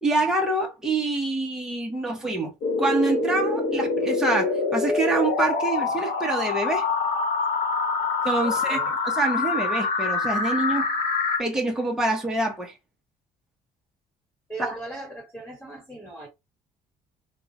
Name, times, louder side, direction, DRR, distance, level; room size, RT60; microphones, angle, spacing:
voice 1, 0.0-2.5 2.8-6.9 8.2-10.9 11.4-12.7 14.6-14.8, right 2 dB, 5° right, 0.8 m, -26 dB
sound 1, 2.6-11.4, left 4 dB, 75° left, 1.1 m, -25 dB
voice 2, 8.4-8.9 14.5-16.3, right 2 dB, 15° left, 1.4 m, -38 dB
3.7 x 2.3 x 2.9 m
cardioid pair, 165°, 15 cm